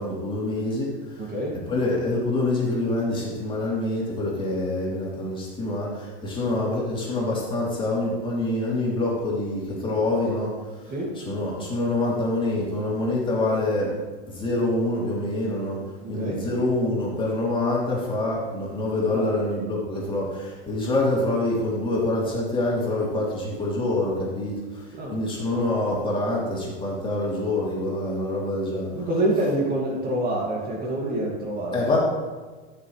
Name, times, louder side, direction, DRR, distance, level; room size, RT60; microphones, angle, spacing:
voice 1, 0.0-1.3 1.7-10.5 10.8-13.9 14.3-15.8 16.1-28.9 31.7-32.0, left 2 dB, 15° left, -5 dB, 3.1 m, -26 dB
voice 2, 1.2-1.6 10.9-11.1 16.0-16.4 19.1-19.3 25.0-25.1 28.9-32.0, right 1 dB, 30° right, -3 dB, 2.3 m, -27 dB
14.0 x 7.0 x 3.3 m, 1.4 s
hypercardioid pair, 125°, 31 cm